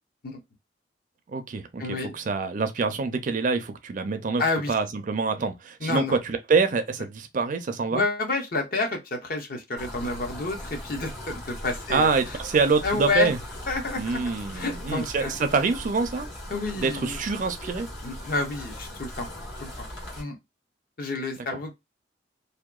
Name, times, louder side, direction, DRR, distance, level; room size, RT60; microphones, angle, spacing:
voice 1, 1.3-4.4 4.7-8.1 11.9-13.4 14.0-16.3 16.8-17.9 21.4-21.5, right 4 dB, 45° right, 0.4 m, -26 dB
voice 2, 1.8-2.1 4.4-4.7 5.8-6.2 7.9-12.1 12.8-13.3 13.7-14.2 14.5-15.4 16.5-17.2 18.0-19.3 19.6-19.7 20.2-20.4 21.0-21.7, left 3 dB, 50° left, 0.7 m, -29 dB
sound 1, 9.8-20.2, left 1 dB, 75° left, 1.1 m, -39 dB
2.7 x 2.1 x 2.2 m
head